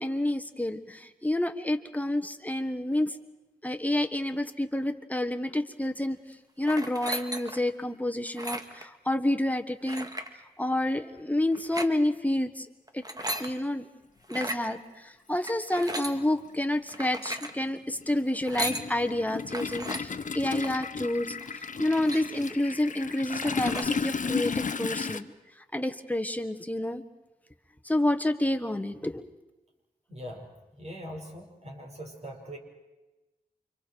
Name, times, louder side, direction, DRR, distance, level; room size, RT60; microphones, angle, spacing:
voice 1, 0.0-3.2 3.6-6.2 6.6-10.1 10.6-12.7 12.9-13.0 13.4-13.9 14.3-25.3 25.7-27.0 27.8-29.2, left 1 dB, 10° left, 6 dB, 1.5 m, -29 dB
sound 1, 6.6-7.7 8.3-8.9 9.9-10.3 11.5-11.9 12.9-13.5 14.2-14.7 15.5-16.2 16.9-17.5 18.3-18.9 19.5-20.0 20.5-20.9 21.4-21.5 21.7-22.6 23.0-23.1 23.3-23.9, right 1 dB, 25° right, 1.9 m, -36 dB
Toilet flush, 14.7-14.8 16.1-16.2 16.6-25.2, left 5 dB, 55° left, 0.8 m, -34 dB
voice 2, 30.1-30.5 30.8-32.6, equal, 45° right, 1 dB, 5.6 m, -41 dB
29.5 x 25.5 x 4.7 m, 1.1 s
wide cardioid pair, 65°, 16 cm